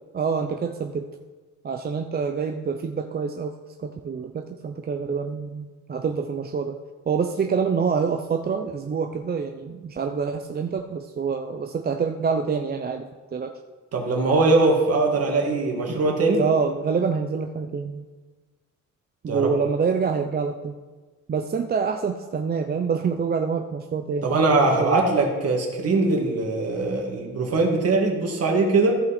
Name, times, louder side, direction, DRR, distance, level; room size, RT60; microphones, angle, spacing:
voice 1, 0.1-1.1 1.6-6.8 7.1-13.5 15.9-16.0 16.4-18.0 19.2-20.8 21.3-25.1, right 5 dB, 30° right, 5 dB, 0.6 m, -26 dB
voice 2, 13.9-16.4 19.3-19.5 24.2-29.0, right 3 dB, 55° right, 1 dB, 2.2 m, -21 dB
15.0 x 5.4 x 4.3 m, 1.3 s
cardioid pair, 90°, 30 cm